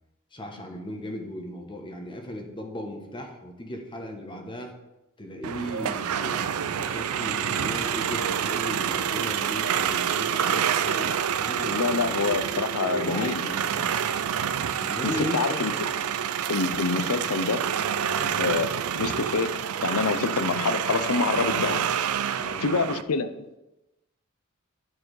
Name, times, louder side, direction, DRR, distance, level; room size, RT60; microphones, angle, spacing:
voice 1, 0.3-4.7 5.2-12.0 12.9-14.0 14.8-15.7 18.0-18.4 20.0-20.3 22.4-22.7, left 1 dB, 25° left, 1.1 m, -37 dB
sound 1, 5.4-23.0, right 8 dB, 85° right, 0.4 m, -28 dB
voice 2, 11.7-13.4 14.7-15.7 16.5-17.7 18.4-21.9 22.6-23.6, left 4 dB, 90° left, 0.6 m, -27 dB
10.0 x 4.8 x 4.7 m
head